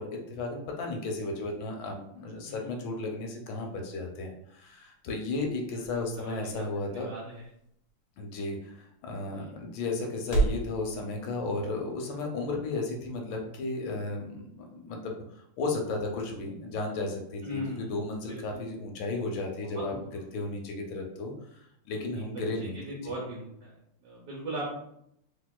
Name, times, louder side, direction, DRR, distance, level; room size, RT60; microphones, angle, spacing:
voice 1, 0.0-7.1 8.2-23.1, left 2 dB, 75° left, 2 dB, 1.3 m, -34 dB
sound 1, 4.4-10.7, right 3 dB, 60° left, 1.1 m, -36 dB
voice 2, 6.1-6.7 6.9-7.4 9.3-9.5 17.4-18.6 19.7-20.0 22.1-22.2 22.6-23.7 24.0-24.7, equal, 65° right, -5 dB, 1.0 m, -39 dB
3.3 x 2.8 x 2.2 m, 0.75 s
omnidirectional pair, 2.4 m